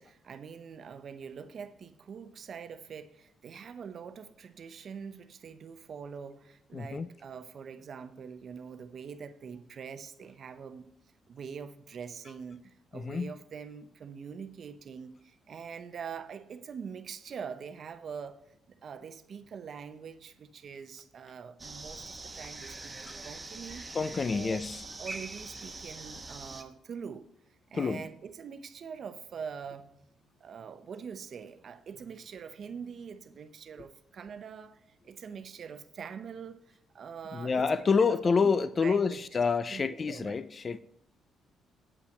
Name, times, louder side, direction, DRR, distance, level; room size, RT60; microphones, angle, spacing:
voice 1, 0.0-10.9 11.3-18.4 18.7-23.9 24.3-24.6 25.0-27.2 27.7-30.1 30.4-37.7 38.0-38.5 38.8-39.2 39.7-40.4, right 6 dB, 55° right, 0.7 m, -44 dB
voice 2, 6.7-7.1 12.9-13.3 23.1-23.2 23.9-24.8 27.7-28.0 37.3-40.8, left 5 dB, 40° left, 0.4 m, -28 dB
sound 1, 21.6-26.6, right 3 dB, 25° right, 1.0 m, -43 dB
8.4 x 5.7 x 6.5 m
cardioid pair, 90°, 0 cm